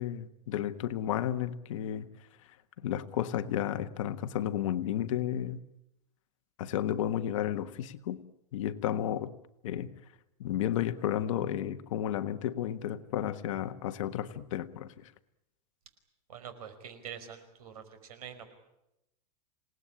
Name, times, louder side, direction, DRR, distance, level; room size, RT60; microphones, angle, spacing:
voice 1, 0.0-2.1 2.8-5.6 6.6-8.2 8.5-9.3 9.6-9.9 10.4-15.1, left 11 dB, 50° left, 10 dB, 1.4 m, -32 dB
voice 2, 16.3-18.5, right 8 dB, 65° right, 10 dB, 5.1 m, -45 dB
28.0 x 18.5 x 10.0 m, 0.89 s
supercardioid pair, 165°, 20 cm